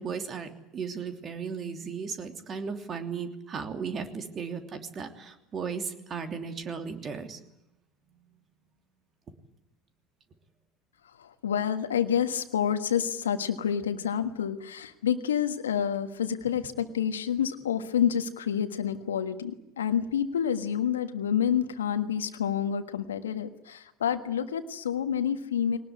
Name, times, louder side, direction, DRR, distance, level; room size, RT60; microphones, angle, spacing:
voice 1, 0.0-7.4, right 6 dB, 40° right, 7 dB, 3.1 m, -36 dB
voice 2, 11.0-25.8, left 8 dB, 80° left, 8 dB, 1.5 m, -28 dB
22.0 x 19.5 x 9.7 m, 0.85 s
hypercardioid pair, 70°, 0 cm